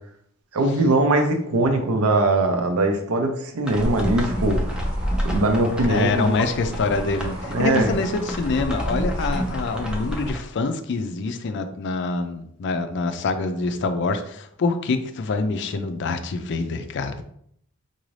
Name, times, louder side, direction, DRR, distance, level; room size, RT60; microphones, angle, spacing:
voice 1, 0.5-4.8 5.2-6.3 7.5-7.9, right 2 dB, 85° right, 5 dB, 0.6 m, -21 dB
sound 1, 3.6-10.4, equal, 5° right, 0.5 m, -32 dB
sound 2, 3.8-10.3, equal, 30° right, 1.4 m, -30 dB
voice 2, 5.8-17.2, left 3 dB, 55° left, 9 dB, 0.4 m, -25 dB
3.9 x 2.6 x 3.2 m, 0.70 s
head